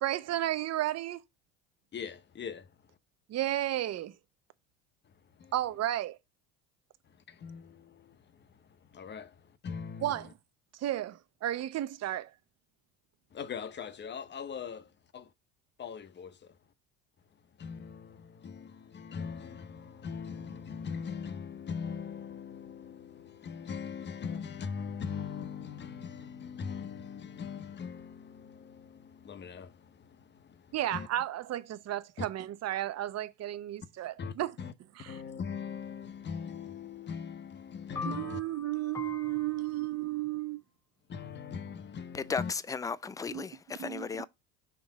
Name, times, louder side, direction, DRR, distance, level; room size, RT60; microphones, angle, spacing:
voice 1, 0.0-1.2 3.3-4.1 5.5-6.2 10.0-10.3 10.8-12.3 30.7-34.5 35.0-35.2 38.0-40.6 43.3-43.5 43.8-44.1, right 13 dB, 40° right, 0.8 m, -33 dB
voice 2, 1.9-2.7 5.0-5.5 7.0-10.3 13.3-15.3 15.8-16.6 17.6-31.1 32.2-32.3 34.2-34.7 35.0-38.4 41.1-42.5, left 6 dB, 30° left, 0.8 m, -41 dB
voice 3, 38.6-39.3 42.1-44.3, left 5 dB, 10° left, 0.3 m, -36 dB
5.9 x 3.9 x 4.8 m
hypercardioid pair, 85°, 39 cm